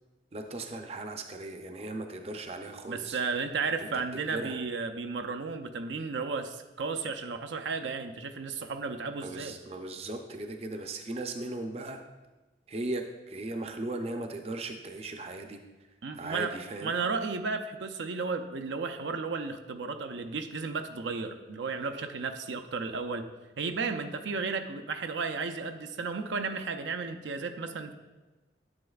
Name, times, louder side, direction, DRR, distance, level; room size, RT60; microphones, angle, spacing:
voice 1, 0.3-3.2 3.8-3.9 4.3-4.6 9.2-12.0 12.7-15.6 16.1-16.9, right 2 dB, 35° right, 5 dB, 0.5 m, -37 dB
voice 2, 2.9-9.5 16.0-23.3 23.6-27.9, right 4 dB, 85° right, 6 dB, 0.5 m, -34 dB
9.6 x 7.6 x 2.4 m, 1.2 s
head